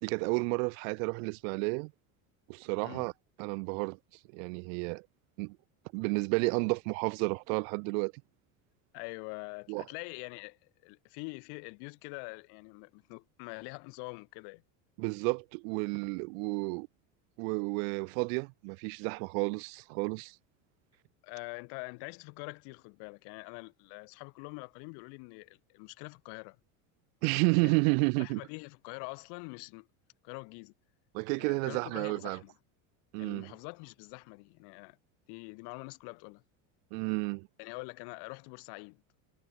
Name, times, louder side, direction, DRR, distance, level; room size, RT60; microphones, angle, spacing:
voice 1, 0.0-1.9 2.5-3.1 3.4-4.0 4.3-5.0 5.4-5.6 5.9-8.1 9.7-9.8 15.0-16.9 17.4-20.3 27.2-28.4 31.1-32.4 33.1-33.5 36.9-37.5, right 36 dB, 70° right, 0.9 m, -31 dB
voice 2, 8.9-14.6 21.2-26.6 27.6-27.8 28.2-29.9 30.2-30.7 31.4-32.5 33.2-35.0 35.3-36.4 37.6-39.0, left 36 dB, 70° left, 3.4 m, -45 dB
supercardioid pair, 115°, 41 cm